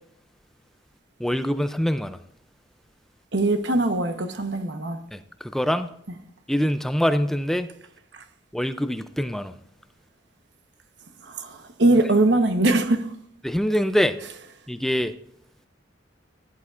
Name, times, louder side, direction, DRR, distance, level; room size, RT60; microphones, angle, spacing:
voice 1, 1.2-2.2 5.1-5.9 6.5-7.7 8.5-9.5 13.4-14.2 14.7-15.1, equal, ahead, 0.3 m, -24 dB
voice 2, 3.3-5.0 8.1-8.2 11.2-13.1, right 2 dB, 75° right, 1.0 m, -21 dB
15.5 x 10.5 x 2.5 m
head